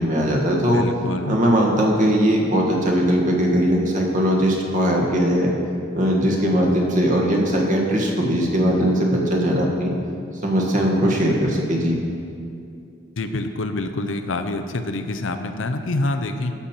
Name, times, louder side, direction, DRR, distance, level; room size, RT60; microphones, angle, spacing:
voice 1, 0.0-0.9 1.3-5.5 5.9-10.0 10.4-12.0, equal, 40° right, -1 dB, 1.6 m, -19 dB
voice 2, 0.7-1.4 13.2-16.5, left 2 dB, 80° left, 6 dB, 0.7 m, -26 dB
12.5 x 7.0 x 4.4 m, 2.4 s
head